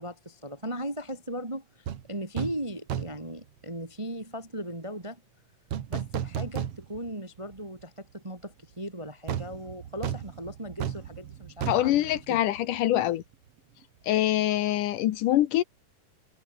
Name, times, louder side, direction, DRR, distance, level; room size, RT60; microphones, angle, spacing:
voice 1, 0.0-5.2 5.9-12.4, equal, 15° right, 1.4 m, -38 dB
sound 1, 1.9-2.0 2.4-2.6 2.9-3.3 5.7-7.1 7.5-7.6 9.3-12.9 13.2-13.3, right 9 dB, 55° right, 2.1 m, -34 dB
voice 2, 11.7-13.2 14.1-15.6, left 13 dB, 75° left, 2.4 m, -24 dB
omnidirectional pair, 3.9 m